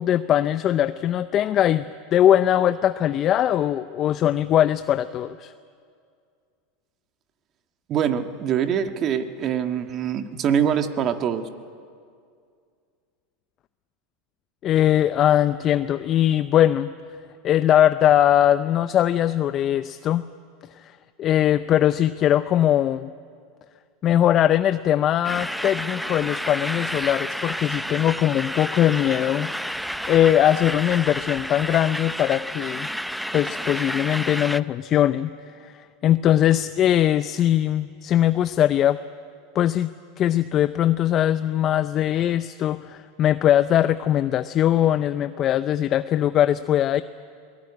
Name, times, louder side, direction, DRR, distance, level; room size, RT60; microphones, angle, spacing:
voice 1, 0.0-1.8 2.1-5.5 14.6-16.9 17.4-20.2 21.2-23.1 24.0-29.5 30.1-32.9 33.3-35.3 35.6-35.7 36.0-39.0 39.5-39.9 40.2-47.0, left 11 dB, 40° left, 12 dB, 0.6 m, -20 dB
voice 2, 7.9-11.5, right 8 dB, 40° right, 7 dB, 1.6 m, -24 dB
sound 1, 25.2-34.6, equal, ahead, 0.6 m, -30 dB
22.0 x 19.0 x 9.8 m, 2.2 s
supercardioid pair, 110°, 0 cm